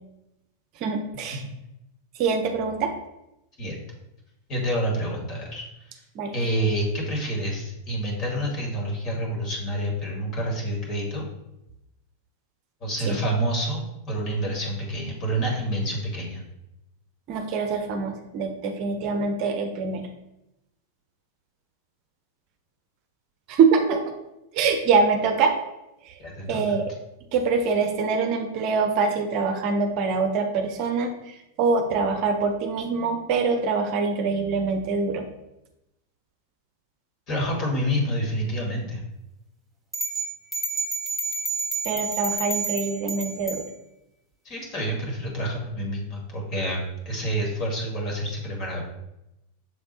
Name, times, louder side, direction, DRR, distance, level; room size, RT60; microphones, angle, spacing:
voice 1, 0.8-1.4 2.2-2.9 6.2-6.3 13.1-13.2 17.3-20.0 23.5-24.0 24.5-25.5 26.5-26.8 27.3-35.2 41.8-43.6, right 4 dB, 40° right, 5 dB, 0.7 m, -24 dB
voice 2, 4.5-5.6 6.3-11.2 12.8-16.4 26.2-26.8 37.3-39.0 44.4-48.8, right 1 dB, 35° left, -1 dB, 2.1 m, -28 dB
sound 1, 39.9-43.6, right 3 dB, 5° right, 1.3 m, -29 dB
6.9 x 3.4 x 4.2 m, 0.89 s
figure-of-eight pair, 90°, 0 cm